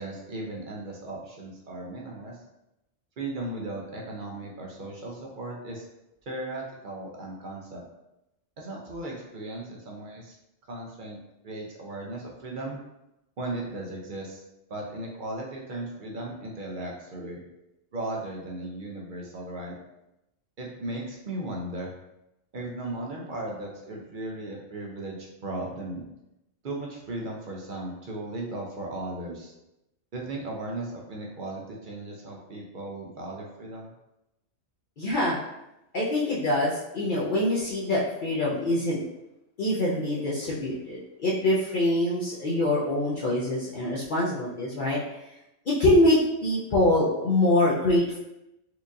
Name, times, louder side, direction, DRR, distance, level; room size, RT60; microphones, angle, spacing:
voice 1, 0.0-2.4 3.2-5.8 6.3-7.8 8.6-10.4 10.7-11.2 11.4-12.8 13.4-14.4 14.7-17.4 17.9-19.8 20.6-21.9 22.5-26.0 26.6-29.5 30.1-33.9, right 2 dB, 50° right, -1 dB, 0.6 m, -36 dB
voice 2, 35.0-35.4 35.9-39.0 39.6-45.0 45.7-48.2, left 1 dB, 55° left, -6 dB, 0.6 m, -24 dB
4.4 x 2.4 x 2.6 m, 0.90 s
omnidirectional pair, 1.3 m